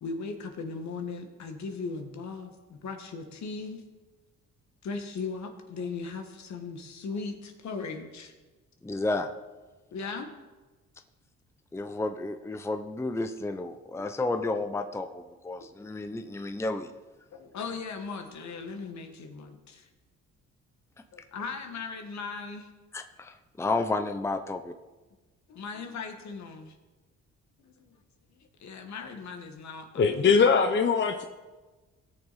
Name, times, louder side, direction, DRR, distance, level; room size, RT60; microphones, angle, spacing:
voice 1, 0.0-3.8 4.8-8.3 9.9-10.3 17.3-19.9 21.1-22.7 25.5-26.8 27.6-28.0 28.3-30.4, left 4 dB, 65° left, 5 dB, 1.6 m, -38 dB
voice 2, 8.8-9.3 11.7-16.9 22.9-24.7, left 2 dB, 10° left, 8 dB, 0.6 m, -31 dB
voice 3, 29.9-31.2, left 5 dB, 40° left, 5 dB, 0.8 m, -21 dB
18.0 x 6.8 x 4.2 m, 1.2 s
cardioid pair, 90°, 30 cm